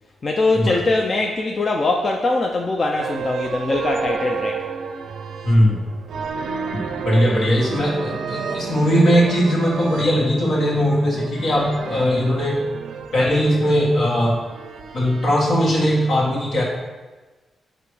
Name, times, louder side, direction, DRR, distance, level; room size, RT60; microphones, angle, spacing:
voice 1, 0.2-4.6, left 2 dB, 30° left, 1 dB, 0.4 m, -22 dB
sound 1, 3.0-15.3, right 5 dB, 85° right, 0.5 m, -31 dB
voice 2, 5.4-5.8 7.0-12.7 13.1-14.4 14.9-16.6, equal, 65° left, -5 dB, 1.9 m, -19 dB
7.7 x 3.0 x 4.8 m, 1.2 s
wide cardioid pair, 145°, 0 cm